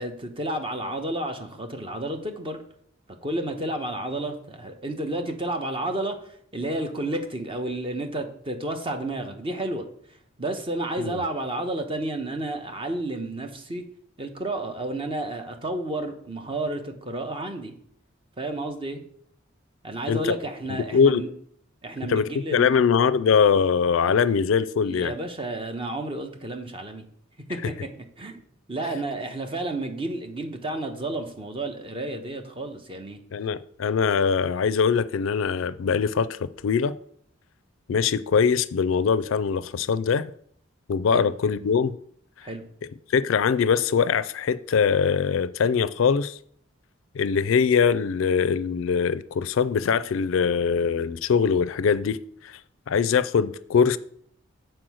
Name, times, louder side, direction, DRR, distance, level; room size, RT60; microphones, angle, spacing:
voice 1, 0.0-2.6 3.2-9.9 10.4-13.8 14.2-17.7 18.4-19.0 19.8-21.3 21.8-22.8 24.8-27.0 27.5-27.9 28.2-28.4 28.7-33.2 41.1-41.3 42.4-42.6, right 1 dB, 25° right, 1.0 m, -31 dB
voice 2, 20.7-21.2 22.1-25.1 33.3-36.9 37.9-40.2 40.9-41.9 43.1-46.4 47.1-52.6 52.9-54.0, left 6 dB, 70° left, 0.4 m, -22 dB
7.7 x 4.5 x 6.2 m
head